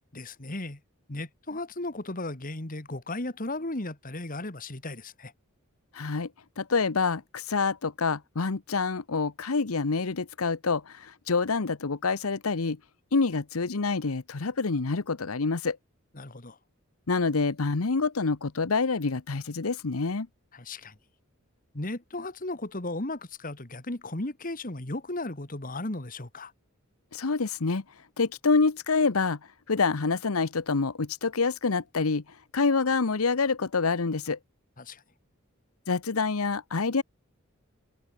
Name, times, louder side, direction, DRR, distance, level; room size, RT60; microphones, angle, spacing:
voice 1, 0.1-0.8 1.1-5.3 16.1-16.6 20.5-21.0 21.7-26.5 34.8-35.0, left 2 dB, 40° left, 2.1 m, -35 dB
voice 2, 5.9-6.3 6.6-12.8 13.1-15.8 17.1-20.3 27.1-27.8 28.2-29.4 29.7-32.2 32.5-34.4 35.9-37.0, left 4 dB, 90° left, 1.0 m, -27 dB
head